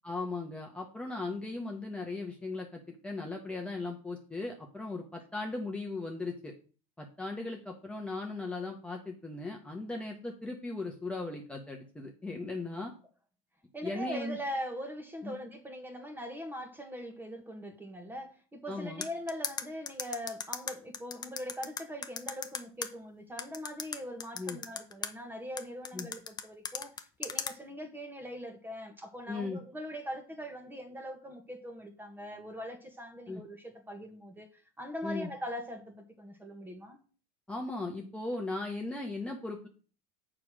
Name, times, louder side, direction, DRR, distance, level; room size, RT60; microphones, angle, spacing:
voice 1, 0.0-6.5 7.0-12.9 13.8-14.4 15.2-15.4 18.7-19.0 24.4-24.6 25.9-26.1 29.3-29.6 33.3-33.4 35.0-35.3 37.5-39.7, left 3 dB, 5° left, 1.3 m, -37 dB
voice 2, 13.7-37.0, equal, 10° right, 1.6 m, -41 dB
sound 1, 19.0-22.9 23.4-25.1 25.6-27.5, left 6 dB, 25° left, 0.9 m, -36 dB
6.8 x 5.1 x 6.3 m
supercardioid pair, 105°, 17 cm